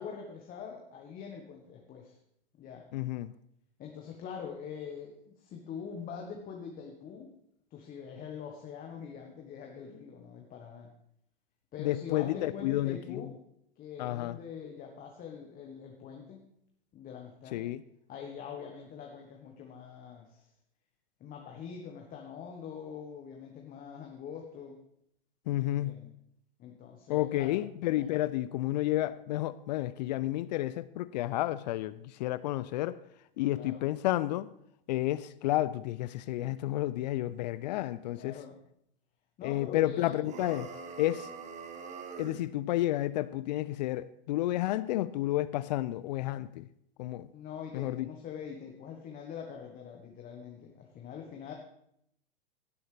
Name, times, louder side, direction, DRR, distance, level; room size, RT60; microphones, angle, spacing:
voice 1, 0.0-2.2 2.6-2.9 3.8-7.3 7.7-10.9 11.7-13.4 13.8-16.5 16.9-17.6 18.1-20.5 21.2-24.8 25.6-26.1 26.6-27.6 28.0-28.2 33.5-33.9 38.2-38.6 39.4-40.3 47.3-51.5, left 7 dB, 30° left, 1.4 m, -44 dB
voice 2, 2.9-3.3 11.8-13.2 14.0-14.4 17.5-17.8 25.5-26.0 27.1-33.0 33.4-34.5 34.9-38.4 39.4-40.7 41.0-41.3 42.2-46.7 47.0-47.3 47.7-48.1, left 15 dB, 50° left, 0.4 m, -31 dB
sound 1, 40.2-42.4, right 5 dB, 25° right, 1.2 m, -43 dB
16.5 x 7.8 x 3.4 m
hypercardioid pair, 100°, 29 cm